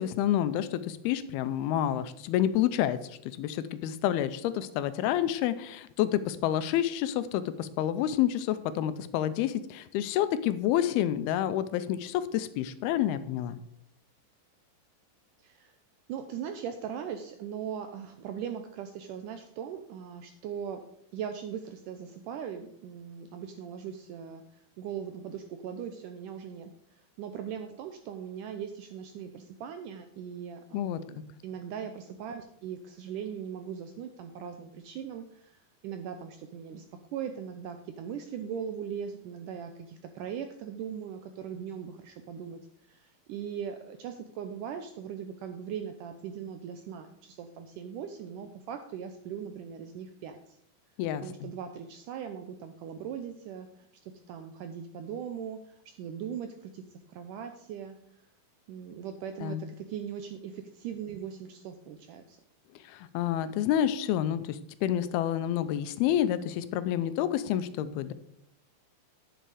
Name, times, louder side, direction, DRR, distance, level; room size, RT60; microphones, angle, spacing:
voice 1, 0.0-13.6 30.7-31.0 51.0-51.5 59.4-59.6 62.9-68.1, left 11 dB, 85° left, 13 dB, 2.6 m, -29 dB
voice 2, 15.4-15.8 16.1-20.8 21.1-35.6 35.8-36.9 37.1-42.6 42.9-50.6 51.2-58.0 58.7-62.4, right 8 dB, 80° right, 7 dB, 1.9 m, -40 dB
10.5 x 7.9 x 4.9 m, 0.71 s
omnidirectional pair, 4.4 m